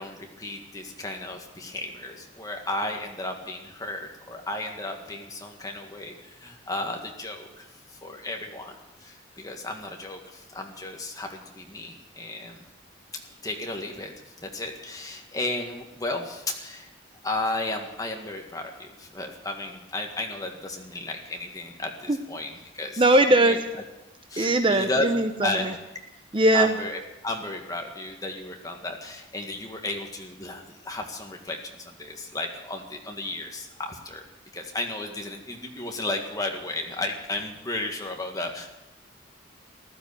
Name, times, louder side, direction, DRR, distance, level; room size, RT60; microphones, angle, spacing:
voice 1, 0.0-7.7 8.0-12.7 13.4-14.1 14.4-16.9 17.2-23.0 23.4-23.6 24.3-25.1 25.4-25.7 26.5-34.2 34.5-38.7, left 2 dB, 20° left, 2 dB, 1.9 m, -34 dB
voice 2, 23.0-23.6 24.4-25.7 26.3-26.7, right 1 dB, 25° right, 7 dB, 0.8 m, -20 dB
15.0 x 12.5 x 7.1 m, 0.96 s
head